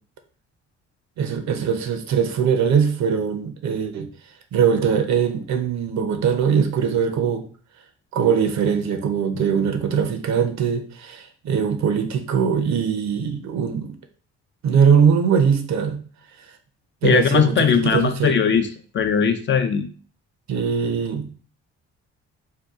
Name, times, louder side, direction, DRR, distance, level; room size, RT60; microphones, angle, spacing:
voice 1, 1.2-4.1 4.5-7.4 8.1-14.0 14.6-16.0 17.0-18.4 20.5-21.3, right 7 dB, 65° right, 7 dB, 0.6 m, -21 dB
voice 2, 17.0-18.7 18.9-19.9, left 6 dB, 40° left, 8 dB, 0.4 m, -19 dB
2.8 x 2.2 x 3.5 m, 0.43 s
cardioid pair, 90°, 30 cm